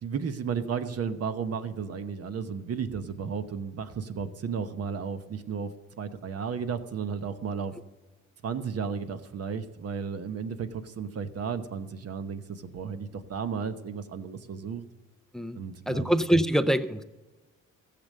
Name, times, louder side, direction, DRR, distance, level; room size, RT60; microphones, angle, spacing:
voice 1, 0.0-5.7 6.0-7.7 8.4-14.8 15.5-16.1, right 6 dB, 55° right, 10 dB, 1.0 m, -33 dB
voice 2, 15.3-17.0, right 1 dB, ahead, 11 dB, 0.5 m, -25 dB
14.5 x 6.9 x 6.5 m, 1.1 s
cardioid pair, 90°, 30 cm